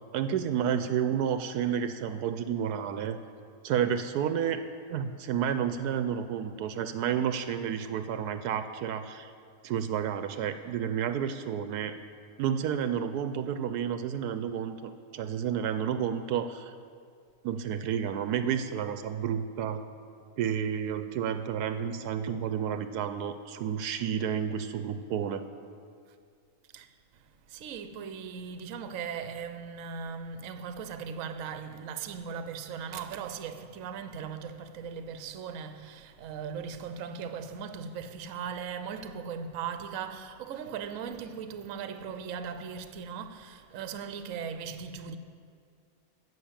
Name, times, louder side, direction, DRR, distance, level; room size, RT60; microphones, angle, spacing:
voice 1, 0.1-3.2 3.6-4.6 4.9-9.3 9.6-12.0 12.4-16.7 17.4-19.8 20.4-25.4, right 8 dB, 80° right, 1.1 m, -30 dB
voice 2, 26.7-45.2, right 6 dB, 65° right, 1.0 m, -38 dB
15.5 x 6.3 x 7.4 m
omnidirectional pair, 1.7 m